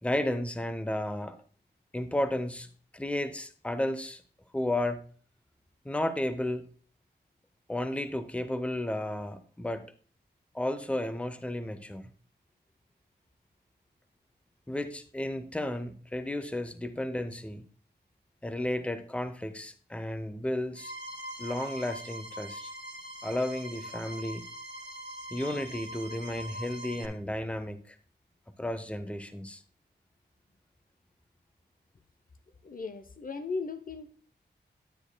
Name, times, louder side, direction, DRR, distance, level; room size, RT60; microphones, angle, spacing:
voice 1, 0.0-1.4 1.9-4.2 4.5-5.0 5.8-6.7 7.7-9.8 10.5-12.1 14.7-17.6 18.4-20.9 21.4-22.7 23.2-24.4 25.3-28.0 28.6-29.6, left 1 dB, 5° left, 0.7 m, -33 dB
sound 1, 20.7-27.0, equal, 80° right, 1.5 m, -42 dB
voice 2, 32.6-34.1, left 4 dB, 50° left, 0.7 m, -37 dB
10.0 x 9.6 x 2.2 m
wide cardioid pair, 70°, 18 cm